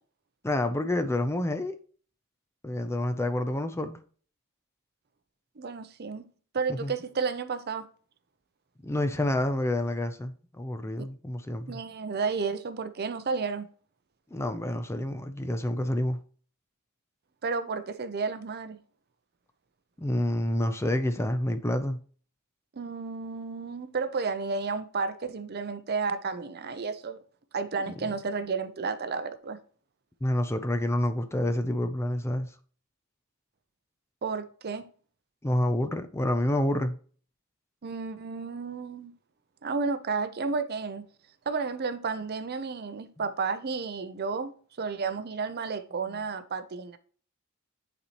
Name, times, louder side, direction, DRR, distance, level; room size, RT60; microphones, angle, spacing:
voice 1, 0.4-1.8 2.6-4.0 6.7-6.9 8.8-11.8 14.3-16.2 20.0-22.0 27.9-28.0 30.2-32.5 35.4-37.0, left 1 dB, 10° left, 0.4 m, -28 dB
voice 2, 5.6-6.2 6.5-7.9 11.7-13.7 17.4-18.8 22.7-27.2 27.5-29.6 34.2-34.8 37.8-39.1 39.6-41.0 41.5-44.5 44.8-47.0, right 4 dB, 45° right, 0.6 m, -32 dB
9.8 x 4.2 x 2.9 m
head